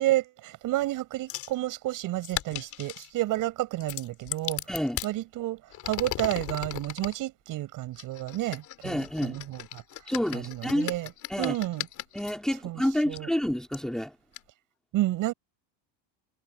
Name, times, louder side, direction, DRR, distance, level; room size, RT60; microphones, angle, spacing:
voice 1, 0.0-4.6 5.0-9.7 10.3-11.1 11.4-11.9 12.6-13.3 14.9-15.3, right 16 dB, 45° right, 7.7 m, -30 dB
sound 1, 1.3-1.5 2.2-3.1 3.8-5.1 5.7-7.1 8.0-12.3 13.1-13.2 13.7-13.8 14.3-14.4, left 14 dB, 40° left, 2.8 m, -37 dB
voice 2, 4.7-5.0 8.8-9.4 10.1-10.9 11.3-11.6 12.1-14.1, equal, ahead, 2.6 m, -29 dB
cardioid pair, 175°, 44 cm